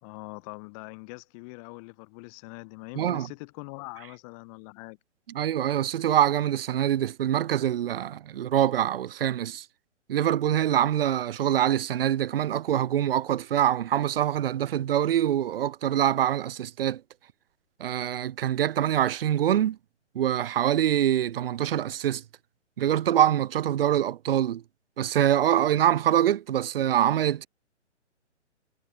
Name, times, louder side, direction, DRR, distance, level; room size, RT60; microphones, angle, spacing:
voice 1, 0.0-5.0, left 32 dB, 30° left, 3.1 m, -43 dB
voice 2, 3.0-3.3 5.3-9.7 10.1-17.0 17.8-19.8 20.1-22.2 22.8-24.6 25.0-27.5, right 11 dB, 50° right, 0.8 m, -24 dB
hypercardioid pair, 135°, 36 cm